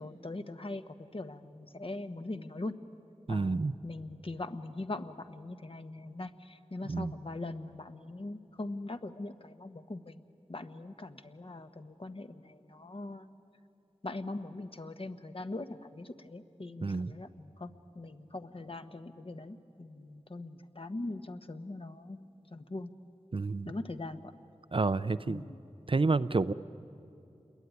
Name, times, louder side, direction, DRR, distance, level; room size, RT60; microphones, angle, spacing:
voice 1, 0.0-2.7 3.3-10.2 10.5-13.3 14.0-22.9 23.6-24.3 25.3-25.6, left 2 dB, 50° left, 8 dB, 1.2 m, -41 dB
voice 2, 3.3-3.7 6.9-7.1 16.8-17.1 23.3-23.7 24.7-25.4 25.9-26.5, right 3 dB, 45° right, 14 dB, 0.6 m, -29 dB
28.0 x 22.0 x 9.5 m, 2.7 s
wide cardioid pair, 60°, 12 cm